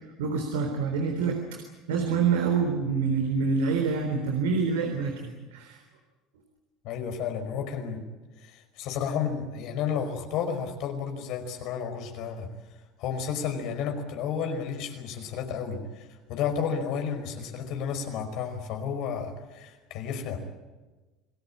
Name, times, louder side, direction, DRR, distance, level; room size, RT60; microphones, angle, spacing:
voice 1, 0.2-1.6 1.9-5.8, right 5 dB, 85° right, 4 dB, 3.8 m, -26 dB
voice 2, 6.8-8.0 8.4-12.5 13.0-20.4, left 7 dB, 65° left, 5 dB, 5.2 m, -32 dB
28.0 x 19.0 x 8.8 m, 1.2 s
hypercardioid pair, 80°, 0 cm